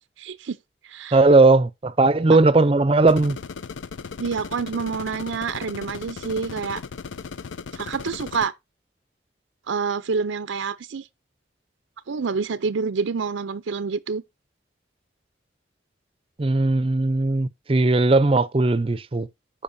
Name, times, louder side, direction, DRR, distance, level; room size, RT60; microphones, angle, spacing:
voice 1, 0.2-0.6 0.8-1.2 4.2-6.8 7.7-8.5 9.7-11.0 12.1-14.2, right 5 dB, 85° right, 0.5 m, -27 dB
voice 2, 1.1-3.4 16.4-19.3, right 3 dB, 30° right, 0.5 m, -18 dB
sound 1, 3.1-8.5, left 5 dB, 85° left, 0.5 m, -36 dB
14.0 x 5.1 x 2.7 m
head